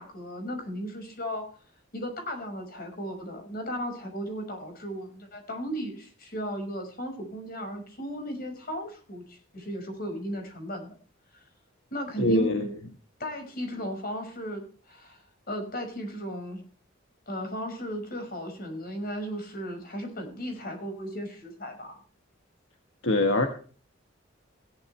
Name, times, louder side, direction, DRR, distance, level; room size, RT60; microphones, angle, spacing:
voice 1, 0.0-1.4 1.9-10.9 11.3-11.4 11.9-12.7 13.2-16.6 17.3-22.0, equal, 50° left, 5 dB, 5.5 m, -36 dB
voice 2, 12.2-12.8 23.0-23.5, left 1 dB, 75° left, 5 dB, 1.6 m, -23 dB
16.5 x 11.5 x 3.3 m, 0.40 s
head